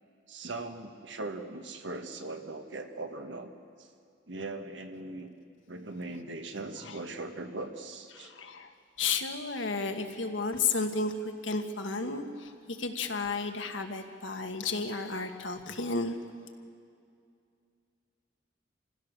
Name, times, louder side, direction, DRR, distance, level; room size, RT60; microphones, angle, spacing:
voice 1, 0.3-3.5 3.8-3.9 4.3-5.3 5.7-8.3, right 2 dB, 75° right, 6 dB, 1.5 m, -40 dB
voice 2, 8.1-8.7 9.0-16.2, left 4 dB, 85° left, 5 dB, 1.6 m, -33 dB
27.5 x 16.0 x 6.7 m, 2.3 s
head